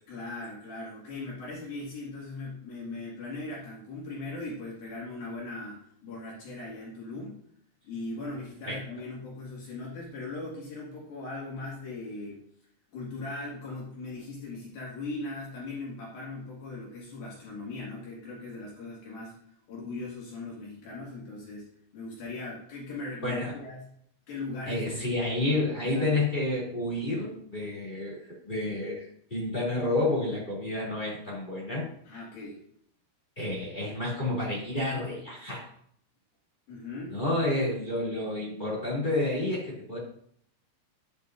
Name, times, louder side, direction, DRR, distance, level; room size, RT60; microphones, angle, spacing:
voice 1, 0.1-7.4 7.8-12.4 12.9-19.4 19.7-23.9 24.3-25.3 25.8-26.2 32.1-32.6 36.7-37.2, left 2 dB, 55° left, -5 dB, 3.5 m, -39 dB
voice 2, 23.2-23.5 24.7-28.2 28.4-31.9 33.4-35.6 37.1-40.0, left 2 dB, 15° left, -6 dB, 2.0 m, -30 dB
10.5 x 8.8 x 2.7 m, 0.65 s
omnidirectional pair, 5.7 m